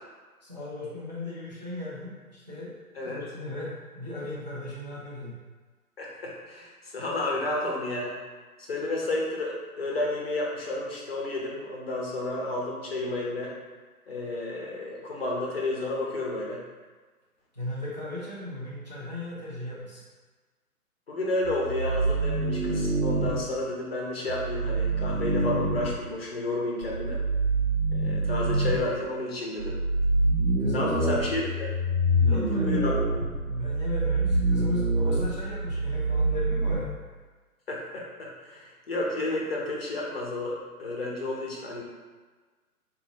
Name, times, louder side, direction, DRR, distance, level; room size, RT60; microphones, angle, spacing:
voice 1, 0.4-2.7 3.0-5.4 17.5-20.0 30.6-31.1 32.1-32.8 33.4-36.9, left 1 dB, 30° right, -7 dB, 0.4 m, -37 dB
voice 2, 6.0-8.1 8.6-13.5 14.1-16.6 21.1-27.2 27.9-29.8 30.7-31.7 32.3-32.4 32.6-32.9 37.7-41.8, left 2 dB, 40° left, -3 dB, 0.7 m, -31 dB
sound 1, 21.4-23.4 24.3-25.9 26.8-28.9 29.6-36.8, right 2 dB, 75° right, 0.8 m, -26 dB
3.9 x 2.6 x 2.7 m, 1.4 s
figure-of-eight pair, 140°, 45 cm